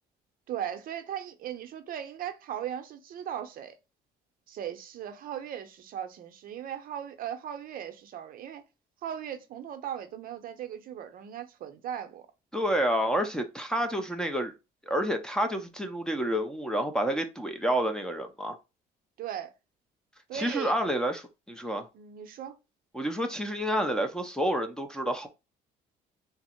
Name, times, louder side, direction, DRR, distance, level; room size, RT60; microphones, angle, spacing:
voice 1, 0.5-3.8 4.5-8.6 9.0-12.3 19.2-19.5 20.3-20.7 21.9-22.5, right 10 dB, 60° right, 0.6 m, -38 dB
voice 2, 12.5-14.5 14.9-18.6 20.3-21.9 22.9-25.3, equal, 5° left, 0.5 m, -29 dB
3.5 x 2.0 x 4.2 m
cardioid pair, 110°, 17 cm